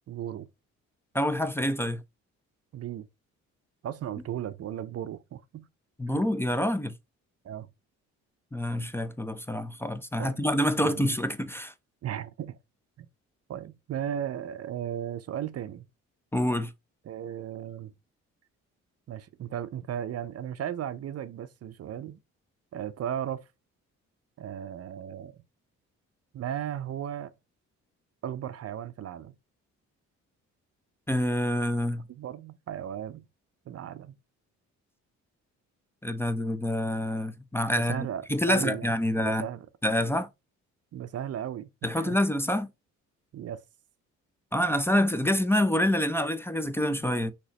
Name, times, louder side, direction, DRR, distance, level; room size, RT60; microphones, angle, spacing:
voice 1, 0.1-0.5 2.7-3.1 3.8-5.7 6.1-6.3 7.4-7.7 10.2-10.4 10.8-11.1 12.0-12.6 13.0-13.1 13.5-15.9 17.0-17.9 19.1-22.2 22.7-23.4 24.4-25.3 26.3-27.3 28.2-29.4 32.1-33.3 33.7-34.2 37.9-39.7 40.9-42.2 43.3-43.6, right 10 dB, 55° right, 0.6 m, -36 dB
voice 2, 1.1-2.0 6.0-6.9 8.5-11.7 16.3-16.7 31.1-32.0 36.0-39.5 39.8-40.3 41.8-42.7 44.5-47.3, left 1 dB, 10° left, 0.6 m, -27 dB
6.1 x 3.0 x 2.9 m
cardioid pair, 90°, 30 cm